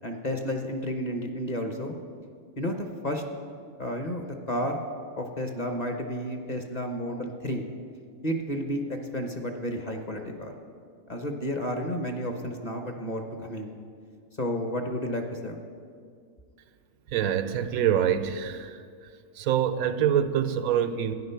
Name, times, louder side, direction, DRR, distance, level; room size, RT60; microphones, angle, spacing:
voice 1, 0.0-1.9 2.6-3.2 3.8-4.8 5.2-7.6 8.2-10.5 11.1-13.7 14.4-15.6, equal, 35° left, 4 dB, 0.9 m, -31 dB
voice 2, 17.1-18.8 19.4-21.2, right 9 dB, 90° right, 12 dB, 1.1 m, -25 dB
12.0 x 9.8 x 5.7 m, 2.2 s
omnidirectional pair, 1.5 m